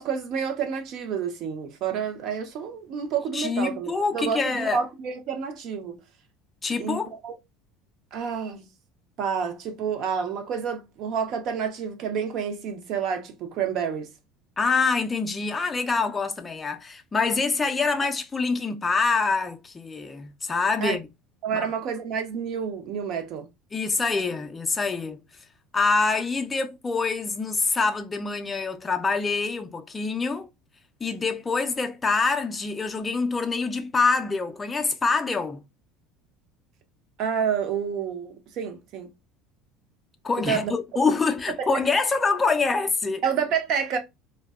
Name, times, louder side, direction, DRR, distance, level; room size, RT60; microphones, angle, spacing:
voice 1, 0.0-6.0 6.8-7.3 8.1-8.6 9.2-14.1 20.8-21.0 21.4-23.5 37.2-39.1 40.4-40.7 41.6-41.7 43.2-44.0, right 7 dB, 50° right, 0.6 m, -29 dB
voice 2, 3.3-4.8 6.6-7.1 14.6-21.1 21.5-21.7 23.7-25.2 25.7-30.5 31.0-35.6 40.2-43.2, left 4 dB, 15° left, 0.4 m, -25 dB
2.6 x 2.1 x 2.3 m
cardioid pair, 150°, 0 cm